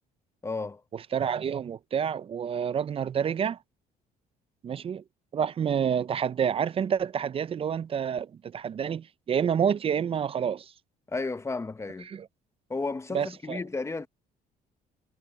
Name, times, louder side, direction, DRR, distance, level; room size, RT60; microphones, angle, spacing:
voice 1, 0.4-0.8 11.1-12.1 12.7-14.1, left 3 dB, 15° left, 1.0 m, -33 dB
voice 2, 1.1-3.6 4.6-5.0 5.3-10.7 12.1-12.3 13.1-13.6, right 8 dB, 35° right, 0.5 m, -28 dB
cardioid pair, 110°, 17 cm